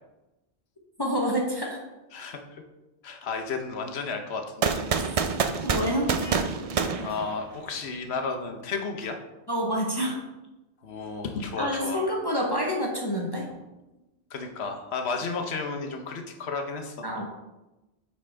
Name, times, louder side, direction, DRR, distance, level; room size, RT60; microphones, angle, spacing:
voice 1, 1.0-1.8 5.6-6.1 9.5-10.2 11.6-13.5 17.0-17.2, equal, 25° left, -1 dB, 0.8 m, -27 dB
voice 2, 2.1-2.6 3.0-4.8 7.0-9.2 10.8-12.0 14.3-17.1, left 4 dB, 75° left, 4 dB, 1.1 m, -33 dB
sound 1, 4.6-7.8, right 5 dB, 55° right, 0.4 m, -27 dB
sound 2, 6.2-6.6 7.1-7.3 9.0-9.1, right 1 dB, 80° right, 1.8 m, -46 dB
8.6 x 4.3 x 3.3 m, 1.0 s
omnidirectional pair, 1.1 m